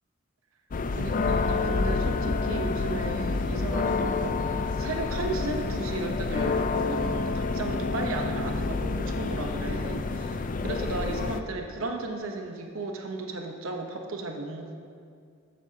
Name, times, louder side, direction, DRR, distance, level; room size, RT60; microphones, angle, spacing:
sound 1, 0.7-11.4, left 3 dB, 40° left, 0.4 m, -28 dB
voice 1, 1.0-14.7, right 2 dB, 80° right, 2 dB, 0.9 m, -35 dB
14.0 x 11.5 x 2.8 m, 2.2 s
head